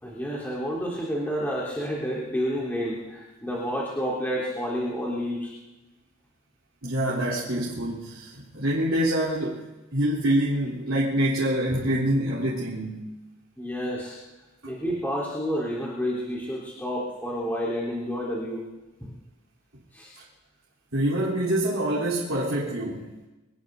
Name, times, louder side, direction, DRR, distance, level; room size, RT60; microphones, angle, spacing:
voice 1, 0.0-5.5 13.6-14.2 14.7-18.6 19.9-20.2, equal, 10° left, -8 dB, 3.7 m, -30 dB
voice 2, 6.8-13.1 20.2-20.3 20.9-23.1, right 1 dB, 80° right, -6 dB, 3.5 m, -26 dB
25.5 x 20.5 x 2.7 m, 1.1 s
head